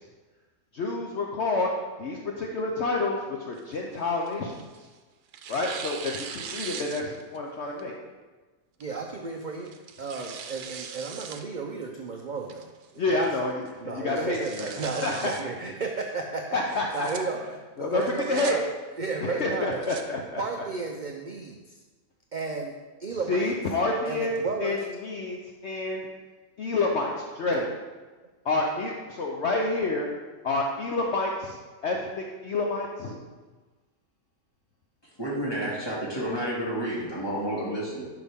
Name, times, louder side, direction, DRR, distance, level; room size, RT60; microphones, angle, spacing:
voice 1, 0.7-1.7 2.0-4.5 5.5-7.9 13.0-15.3 16.5-17.1 17.8-18.0 18.3-18.6 19.2-20.4 23.3-24.8 25.0-25.4 25.6-26.0 26.6-27.7 28.4-30.1 30.4-31.6 31.8-33.1, left 2 dB, 55° left, 0 dB, 0.9 m, -28 dB
Tearing, 3.5-4.9 5.3-7.4 7.8-7.9 8.8-9.1 9.6-11.4 11.8-11.9 12.5-12.9 13.3-13.4 13.7-13.8 14.1-15.4 16.7-17.2 18.0-18.5 19.5-20.0, right 7 dB, 85° right, 1.2 m, -40 dB
voice 2, 8.8-9.7 10.0-13.2 13.8-17.4 17.8-18.7 19.0-19.8 20.4-21.8 22.3-22.7 23.0-23.5 24.1-24.9 37.9-38.0, right 4 dB, 50° right, 1 dB, 0.5 m, -33 dB
voice 3, 35.1-38.1, right 1 dB, 15° left, -6 dB, 2.3 m, -30 dB
10.5 x 5.9 x 3.6 m, 1.3 s
omnidirectional pair, 1.6 m